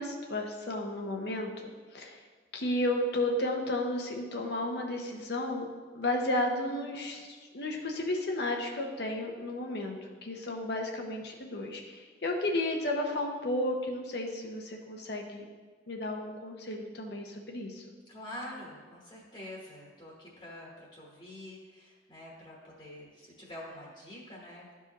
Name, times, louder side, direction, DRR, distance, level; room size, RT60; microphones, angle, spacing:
voice 1, 0.0-2.2 2.5-5.7 5.9-15.5 15.9-18.0, left 1 dB, 60° left, 1 dB, 0.8 m, -33 dB
voice 2, 18.0-24.7, left 1 dB, 30° left, -4 dB, 1.2 m, -46 dB
12.0 x 4.7 x 3.0 m, 1.5 s
head